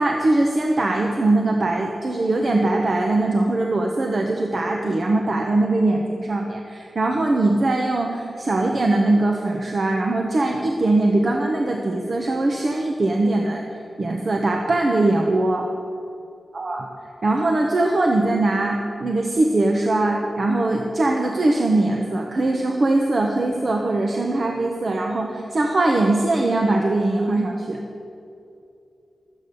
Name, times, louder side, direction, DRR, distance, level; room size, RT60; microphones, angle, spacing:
voice 1, 0.0-13.6 14.0-15.7 16.5-16.9 17.2-27.8, right 2 dB, 45° right, 1 dB, 0.9 m, -21 dB
13.0 x 8.2 x 6.8 m, 2.6 s
wide cardioid pair, 135°, 0 cm